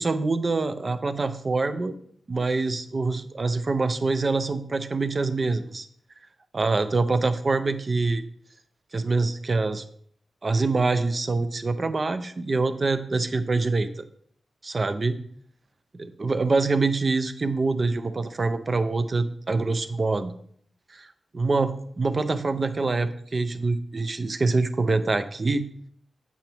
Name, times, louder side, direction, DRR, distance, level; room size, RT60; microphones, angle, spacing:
voice 1, 0.0-2.0 2.3-5.9 6.5-8.2 8.9-9.8 10.4-13.9 14.6-15.2 15.9-20.3 20.9-21.1 21.3-25.6, right 3 dB, 40° right, 11 dB, 0.7 m, -25 dB
8.9 x 7.0 x 3.5 m, 0.63 s
cardioid pair, 80°, 0 cm